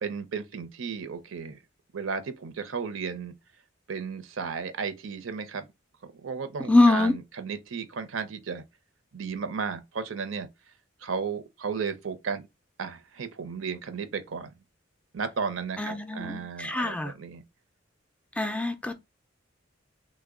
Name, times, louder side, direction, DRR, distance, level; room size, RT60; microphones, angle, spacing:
voice 1, 0.0-1.6 1.9-3.3 3.9-5.7 6.0-8.6 9.1-10.5 11.0-12.4 12.8-14.5 15.1-17.4, right 5 dB, 80° right, 0.6 m, -34 dB
voice 2, 6.7-7.1 15.8-17.1 18.4-18.9, left 2 dB, 5° left, 0.4 m, -23 dB
3.2 x 2.1 x 3.5 m
head